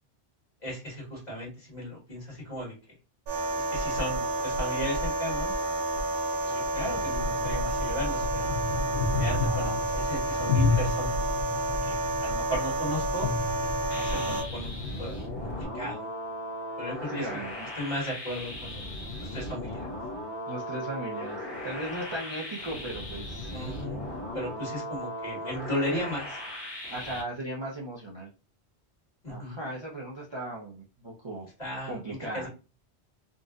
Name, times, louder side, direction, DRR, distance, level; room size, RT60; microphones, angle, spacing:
voice 1, 0.6-2.7 3.6-5.5 6.4-8.6 9.2-11.3 11.8-13.3 14.0-14.7 15.0-15.2 15.4-16.1 16.8-17.4 17.8-19.9 23.5-26.4 29.2-29.6 31.6-32.5, equal, 40° left, -4 dB, 1.9 m, -36 dB
sound 1, 3.3-14.4, right 2 dB, 65° right, 0.8 m, -30 dB
sound 2, 6.7-15.6, left 3 dB, 60° left, 1.1 m, -32 dB
voice 2, 9.3-9.8 13.9-14.4 17.1-17.7 20.5-23.5 26.9-28.3 29.3-31.5 31.9-32.5, right 1 dB, 30° right, -4 dB, 0.6 m, -37 dB
sound 3, 13.9-27.2, left 1 dB, 25° left, 1.2 m, -37 dB
3.8 x 2.5 x 2.4 m, 0.33 s
omnidirectional pair, 1.1 m